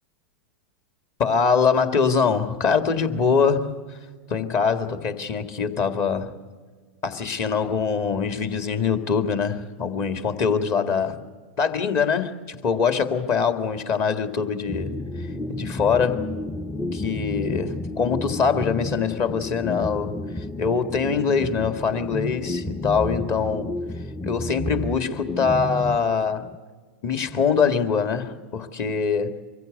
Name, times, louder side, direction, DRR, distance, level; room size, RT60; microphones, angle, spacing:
voice 1, 1.2-3.7 4.3-6.3 7.0-11.2 11.6-14.9 15.2-16.3 16.9-23.7 24.2-26.5 27.0-29.3, left 5 dB, 40° left, 8 dB, 2.0 m, -23 dB
sound 1, 14.7-26.6, left 2 dB, 5° left, 0.6 m, -31 dB
24.0 x 15.0 x 9.3 m, 1.5 s
hypercardioid pair, 105°, 7 cm